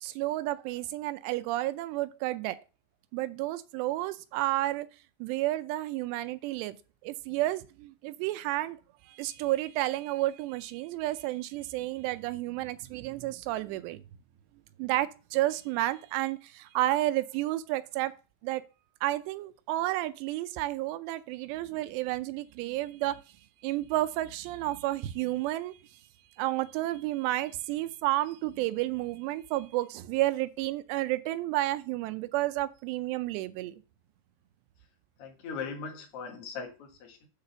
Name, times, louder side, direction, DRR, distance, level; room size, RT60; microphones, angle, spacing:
voice 1, 0.0-2.6 3.1-4.9 5.2-6.8 7.0-8.8 9.1-14.0 14.8-18.1 18.4-18.6 19.0-23.2 23.6-25.8 26.4-33.8, right 16 dB, 85° right, 2.5 m, -31 dB
voice 2, 35.2-37.3, left 5 dB, 50° left, 2.0 m, -39 dB
8.2 x 4.0 x 6.8 m
omnidirectional pair, 5.2 m